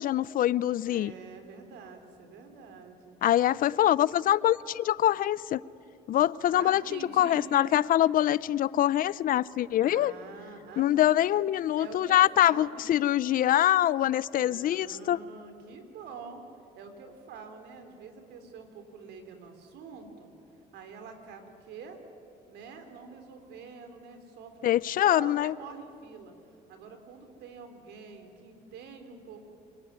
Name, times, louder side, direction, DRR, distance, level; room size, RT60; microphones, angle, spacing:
voice 1, 0.0-1.1 3.2-5.6 6.1-10.1 10.8-15.2 24.6-25.5, left 12 dB, 55° left, 0.5 m, -24 dB
voice 2, 0.8-3.2 6.5-7.7 9.8-11.1 11.8-12.9 14.3-16.4 16.8-20.3 20.7-22.0 22.5-24.8 25.1-26.3 26.7-29.5, right 5 dB, 80° right, 3.7 m, -46 dB
27.5 x 20.5 x 9.6 m
cardioid pair, 110°, 17 cm